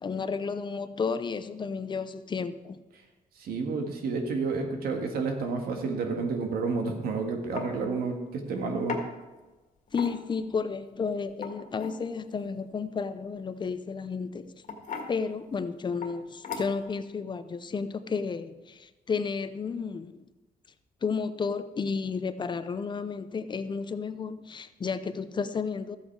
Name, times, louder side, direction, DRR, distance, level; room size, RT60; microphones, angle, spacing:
voice 1, 0.0-2.8 9.9-14.6 15.1-20.2 21.0-26.0, left 5 dB, 30° left, 0.6 m, -32 dB
voice 2, 3.4-9.0, right 4 dB, 90° right, 1.8 m, -30 dB
sound 1, 6.9-7.0 7.6-7.7 8.9-9.1 9.9-10.4 11.3-12.0 13.6-13.9 14.6-15.1 16.0-16.2 16.4-16.9, left 5 dB, 55° left, 1.9 m, -36 dB
13.5 x 8.1 x 4.7 m
cardioid pair, 140°, 15 cm